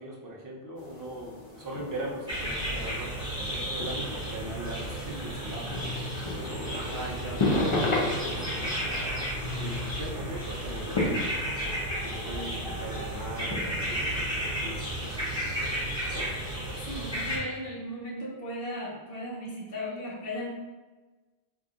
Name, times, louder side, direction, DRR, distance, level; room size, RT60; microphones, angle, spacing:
voice 1, 0.0-5.8 6.7-9.0 9.5-11.4 12.0-16.3, right 1 dB, 25° right, -5 dB, 0.5 m, -40 dB
sound 1, 0.8-15.8, left 2 dB, 35° left, 0.5 m, -35 dB
sound 2, 2.3-17.4, right 1 dB, 5° right, 1.0 m, -33 dB
voice 2, 16.9-20.5, equal, 55° left, -5 dB, 1.0 m, -36 dB
2.9 x 2.5 x 3.6 m, 1.2 s
omnidirectional pair, 1.2 m